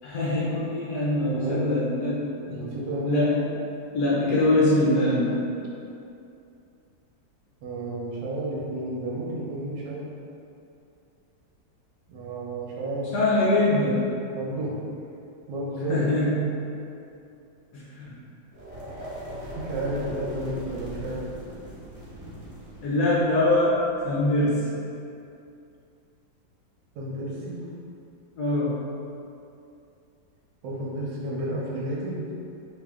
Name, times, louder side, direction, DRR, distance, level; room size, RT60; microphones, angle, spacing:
voice 1, 0.0-2.6 3.1-3.4 3.9-5.4 13.1-14.0 15.9-16.5 17.7-18.1 22.8-23.8 24.0-24.7 28.4-28.7, left 1 dB, 65° left, -7 dB, 1.0 m, -23 dB
voice 2, 1.3-1.7 2.5-3.3 4.2-4.3 7.6-10.0 12.1-13.1 14.4-14.7 15.5-16.5 19.6-21.2 26.9-27.6 30.6-32.2, right 1 dB, 70° right, -4 dB, 1.4 m, -31 dB
sound 1, 18.5-24.5, right 1 dB, 15° right, 0.7 m, -40 dB
3.2 x 2.9 x 3.5 m, 2.6 s
omnidirectional pair, 2.1 m